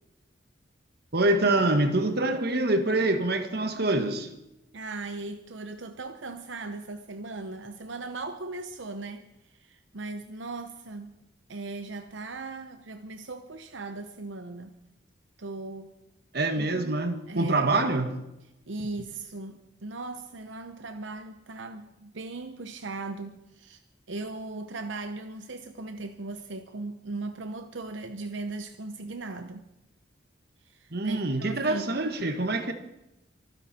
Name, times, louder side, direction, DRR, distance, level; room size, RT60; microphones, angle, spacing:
voice 1, 1.1-4.3 16.3-18.2 30.9-32.7, right 2 dB, 55° right, 7 dB, 1.7 m, -25 dB
voice 2, 4.7-11.1 11.5-14.7 15.4-15.9 16.6-17.8 18.7-23.8 24.1-29.6 30.6-32.0, right 3 dB, 85° right, 8 dB, 0.9 m, -38 dB
25.0 x 10.0 x 4.4 m, 0.89 s
head